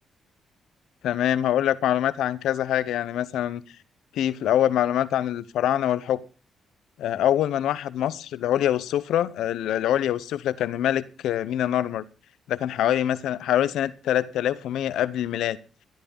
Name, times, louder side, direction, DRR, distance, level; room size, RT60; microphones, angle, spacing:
voice 1, 1.0-3.6 4.1-6.2 7.0-12.1 12.5-15.6, left 11 dB, 80° left, 17 dB, 0.7 m, -24 dB
13.5 x 10.5 x 5.3 m, 0.34 s
supercardioid pair, 55°, 0 cm